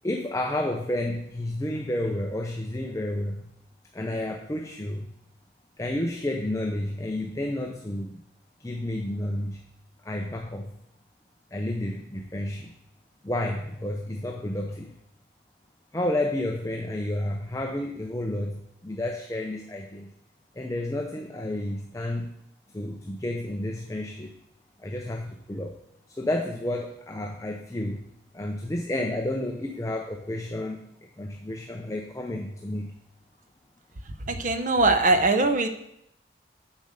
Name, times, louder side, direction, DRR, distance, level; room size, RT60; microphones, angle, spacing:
voice 1, 0.0-3.5 3.9-5.1 5.8-8.2 8.6-9.6 10.0-10.7 11.5-12.7 13.2-14.9 15.9-20.1 20.6-22.3 22.7-24.3 24.8-25.7 26.2-28.0 28.3-30.8 31.2-33.0, left 1 dB, 15° left, 3 dB, 0.5 m, -31 dB
voice 2, 34.3-35.7, right 2 dB, 45° right, 8 dB, 0.7 m, -21 dB
7.2 x 5.4 x 6.5 m, 0.80 s
head